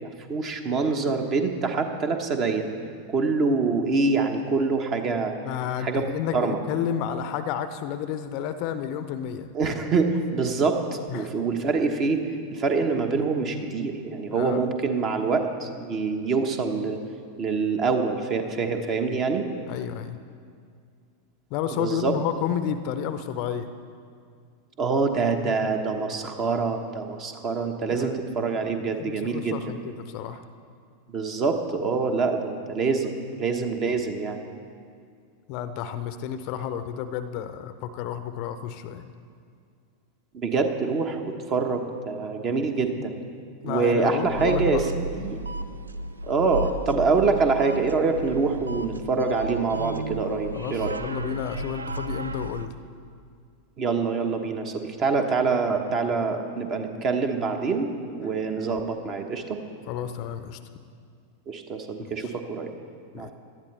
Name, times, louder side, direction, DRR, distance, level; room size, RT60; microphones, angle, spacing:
voice 1, 0.0-2.7 3.1-5.3 5.8-6.0 6.3-6.6 9.5-12.2 12.5-17.0 17.4-19.5 21.7-22.1 24.8-29.6 31.1-34.4 40.3-43.2 43.6-45.4 46.3-51.0 53.8-57.9 58.2-59.6 61.5-62.7 63.1-63.3, right 4 dB, 30° right, 5 dB, 1.2 m, -25 dB
voice 2, 5.4-9.5 11.1-11.3 14.3-14.6 19.7-20.2 21.5-23.7 27.9-28.2 29.0-30.4 35.5-39.1 43.6-44.9 50.5-52.7 59.9-60.6 62.0-62.3 63.1-63.3, left 9 dB, 45° left, 11 dB, 0.6 m, -31 dB
sound 1, 44.2-52.7, right 2 dB, 75° right, 0.4 m, -33 dB
18.0 x 12.0 x 3.4 m, 2.2 s
figure-of-eight pair, 90°, 0 cm